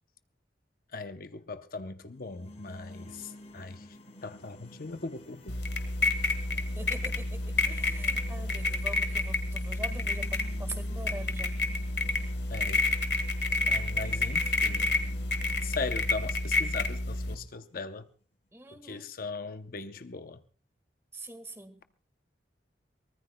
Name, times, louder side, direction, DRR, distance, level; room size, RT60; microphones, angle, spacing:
voice 1, 0.9-3.9 4.2-5.5 12.5-12.9 13.7-15.0 15.6-18.1 18.8-20.4, left 3 dB, 55° left, 0.7 m, -39 dB
sound 1, 2.1-18.1, equal, 40° left, 2.4 m, -52 dB
sound 2, 5.5-17.3, left 2 dB, 75° left, 1.7 m, -29 dB
voice 2, 6.8-11.5 18.5-19.1 21.1-21.8, right 1 dB, 15° right, 1.7 m, -44 dB
23.5 x 20.0 x 2.2 m
head